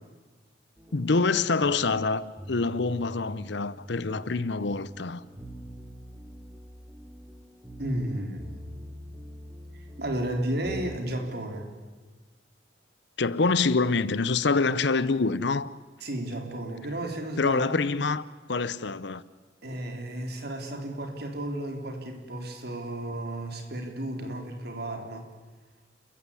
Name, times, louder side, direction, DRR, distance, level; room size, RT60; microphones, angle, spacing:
sound 1, 0.8-11.7, equal, 15° right, 2.3 m, -45 dB
voice 1, 0.9-5.2 13.2-15.7 17.4-19.2, left 4 dB, 60° left, 0.7 m, -26 dB
voice 2, 7.8-8.5 9.7-11.7 16.0-17.6 19.6-25.3, right 1 dB, 50° right, 3.5 m, -33 dB
30.0 x 14.5 x 9.8 m
head